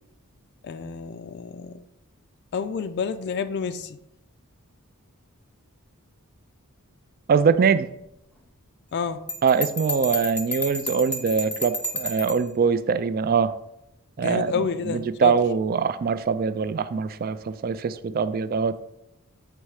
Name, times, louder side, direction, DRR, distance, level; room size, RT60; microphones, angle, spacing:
voice 1, 0.6-1.8 2.5-4.0 8.9-9.2 14.2-15.3, left 6 dB, 50° left, 11 dB, 0.3 m, -29 dB
voice 2, 7.3-7.9 9.4-13.5 14.2-14.5 14.9-18.8, right 6 dB, 40° right, 13 dB, 0.3 m, -23 dB
Bell, 9.3-12.5, left 1 dB, 5° left, 0.7 m, -31 dB
7.9 x 3.2 x 4.7 m, 0.81 s
head